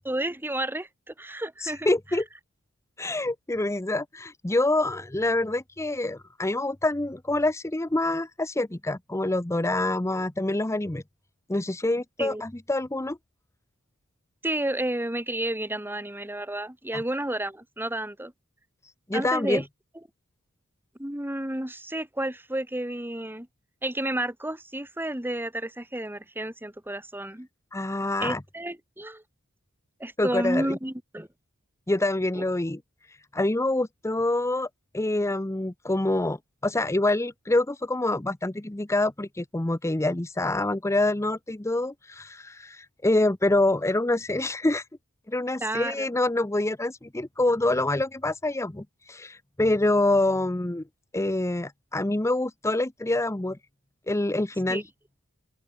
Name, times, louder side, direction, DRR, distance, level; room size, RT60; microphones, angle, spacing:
voice 1, 0.0-1.9 12.2-12.4 14.4-18.3 19.1-19.6 21.0-23.5 23.8-27.5 28.2-29.2 30.0-31.3 32.3-32.4 45.6-46.1 54.7-54.8, right 1 dB, 10° right, 2.6 m, -31 dB
voice 2, 1.6-2.3 3.0-11.0 11.5-13.2 16.9-17.0 18.8-19.6 27.7-28.4 30.2-30.8 31.9-34.7 34.9-36.4 36.6-44.9 45.3-50.8 51.1-53.6 54.1-54.8, left 2 dB, 15° left, 0.7 m, -26 dB
open air
head